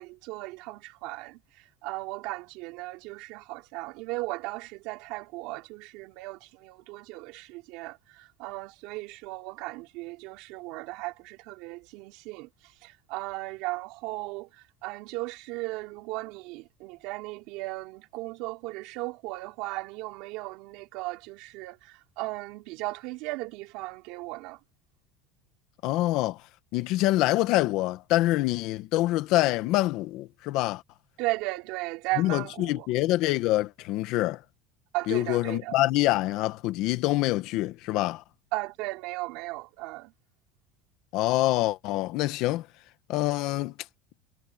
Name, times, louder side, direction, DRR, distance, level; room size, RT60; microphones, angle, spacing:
voice 1, 0.0-24.6 31.2-32.9 34.9-35.7 38.5-40.1, right 21 dB, 60° right, 3.7 m, -36 dB
voice 2, 25.8-26.4 26.7-30.8 32.2-34.4 35.1-38.2 41.1-42.7 43.1-43.7, left 17 dB, 50° left, 1.3 m, -25 dB
cardioid pair, 165°, 0 cm